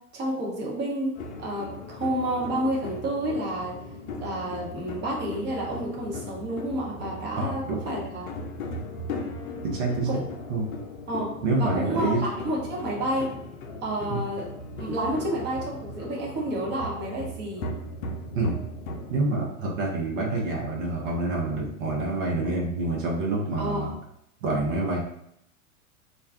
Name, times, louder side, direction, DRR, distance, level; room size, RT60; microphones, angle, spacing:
voice 1, 0.1-3.8 4.1-8.3 10.1-10.2 11.1-11.3 11.6-13.3 13.8-14.5 14.8-17.7 23.6-23.9, right 1 dB, 25° right, -3 dB, 0.9 m, -30 dB
sound 1, 1.1-19.2, left 2 dB, 70° left, 0.6 m, -37 dB
voice 2, 7.4-7.8 9.6-10.1 10.5-10.7 11.4-12.2 14.1-14.2 18.3-18.5 19.1-23.9 24.4-25.0, right 2 dB, 65° right, -2 dB, 0.9 m, -27 dB
2.5 x 2.2 x 3.4 m, 0.75 s
hypercardioid pair, 100°, 43 cm